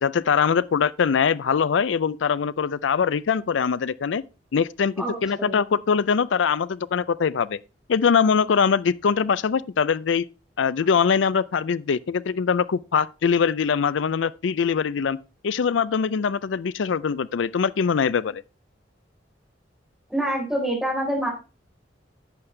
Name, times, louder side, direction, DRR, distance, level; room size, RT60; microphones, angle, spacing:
voice 1, 0.0-4.2 4.5-7.6 7.9-10.3 10.6-15.2 15.4-18.4, left 6 dB, 90° left, 0.4 m, -22 dB
voice 2, 5.0-5.6 20.1-21.3, right 1 dB, 5° right, 3.9 m, -26 dB
11.5 x 7.9 x 3.3 m
head